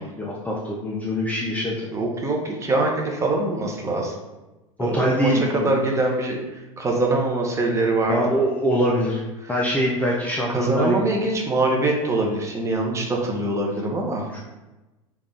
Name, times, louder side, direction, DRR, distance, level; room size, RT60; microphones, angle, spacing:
voice 1, 0.0-1.9 4.8-5.7 8.1-9.2 9.5-11.0 14.3-14.4, equal, 10° left, -4 dB, 0.4 m, -24 dB
voice 2, 1.9-4.1 4.8-8.2 9.4-9.5 10.5-14.3, right 2 dB, 15° right, 0 dB, 0.8 m, -23 dB
3.5 x 2.4 x 4.0 m, 1.1 s
hypercardioid pair, 95°, 18 cm